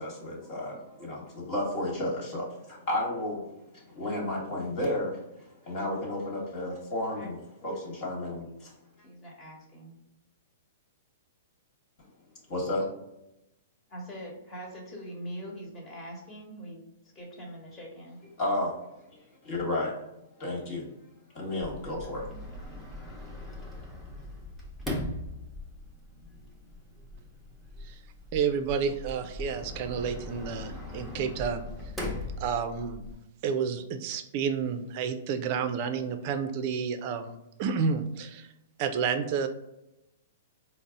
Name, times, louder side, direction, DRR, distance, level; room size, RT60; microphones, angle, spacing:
voice 1, 0.0-7.4 7.6-8.7 12.5-12.8 18.4-18.7 19.1-19.9 20.4-20.9 21.3-22.3, left 1 dB, 50° left, -3 dB, 1.3 m, -32 dB
voice 2, 7.6-8.6 9.0-10.0 13.9-16.9 17.1-18.2, equal, 20° left, -2 dB, 1.2 m, -43 dB
Sliding door, 21.6-33.1, left 1 dB, ahead, 0.8 m, -40 dB
voice 3, 28.3-31.7 32.4-33.0 33.4-38.5 38.8-39.5, right 6 dB, 45° right, 9 dB, 0.4 m, -30 dB
3.9 x 2.0 x 3.7 m, 0.88 s
hypercardioid pair, 125°, 0 cm